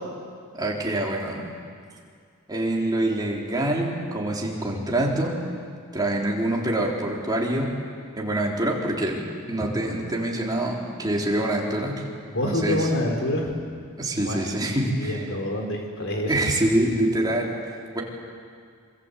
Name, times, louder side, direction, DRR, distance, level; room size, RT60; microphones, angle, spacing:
voice 1, 0.6-1.5 2.5-5.4 5.9-7.7 8.2-12.0 12.4-12.9 14.0-15.3 16.2-17.6 17.9-18.0, right 1 dB, 20° right, -2 dB, 4.0 m, -25 dB
voice 2, 12.3-13.5 14.2-16.3, left 1 dB, 60° left, 2 dB, 4.4 m, -27 dB
26.5 x 24.5 x 8.4 m, 2.2 s
head